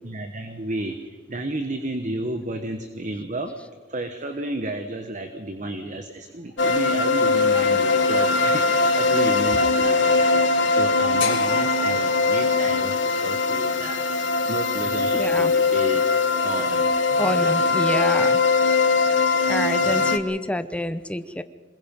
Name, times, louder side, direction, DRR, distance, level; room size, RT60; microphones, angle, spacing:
voice 1, 0.0-3.5 3.9-10.4 10.7-16.0 16.4-16.9 17.3-18.0 19.7-20.2, right 1 dB, 40° right, 6 dB, 1.3 m, -32 dB
sound 1, 6.6-20.2, left 3 dB, 65° left, 1.3 m, -21 dB
sound 2, 11.2-15.3, left 6 dB, 80° left, 4.3 m, -37 dB
voice 2, 15.1-15.5 17.1-18.4 19.5-21.4, left 1 dB, 5° left, 12 dB, 0.8 m, -27 dB
26.0 x 21.5 x 5.4 m, 1.4 s
head